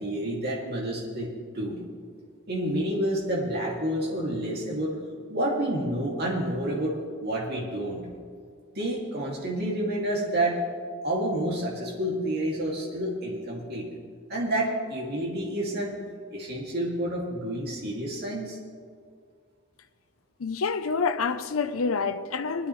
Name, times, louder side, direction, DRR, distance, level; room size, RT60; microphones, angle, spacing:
voice 1, 0.0-1.8 2.5-5.0 5.3-8.1 8.7-10.6 11.0-13.9 14.3-16.0 16.3-18.6, right 1 dB, 50° right, 2.3 m, -29 dB
voice 2, 20.4-22.7, left 5 dB, 80° left, 0.7 m, -27 dB
20.0 x 12.5 x 3.1 m
head